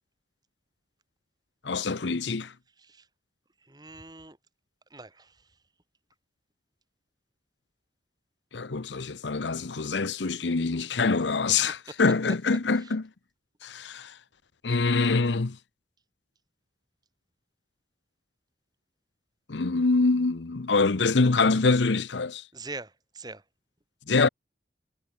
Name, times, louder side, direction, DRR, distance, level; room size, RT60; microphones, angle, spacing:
voice 1, 1.6-2.5 8.5-13.1 13.6-14.2 14.6-15.6 19.5-22.4 24.1-24.3, left 4 dB, 85° left, 0.8 m, -25 dB
voice 2, 3.6-4.4 4.9-5.4 12.8-12.9 22.5-23.4, right 3 dB, 20° right, 4.7 m, -43 dB
head